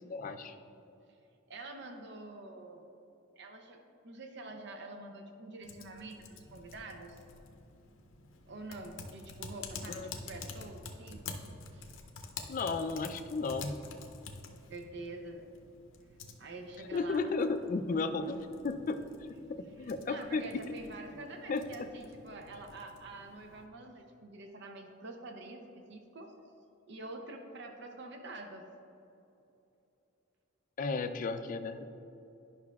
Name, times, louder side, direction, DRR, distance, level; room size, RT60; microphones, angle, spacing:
voice 1, 0.1-0.6 9.9-10.1 12.5-13.8 16.9-20.6 21.5-21.9 30.8-31.8, left 3 dB, 40° left, 9 dB, 0.3 m, -34 dB
voice 2, 1.5-2.8 3.4-3.8 4.0-7.2 8.5-11.2 11.7-11.9 14.7-15.4 16.4-17.3 19.8-26.4 26.9-28.6, right 2 dB, 60° right, 4 dB, 0.6 m, -46 dB
Typing, 5.6-23.7, left 4 dB, 80° left, 0.6 m, -49 dB
10.5 x 5.7 x 2.3 m, 2.8 s
head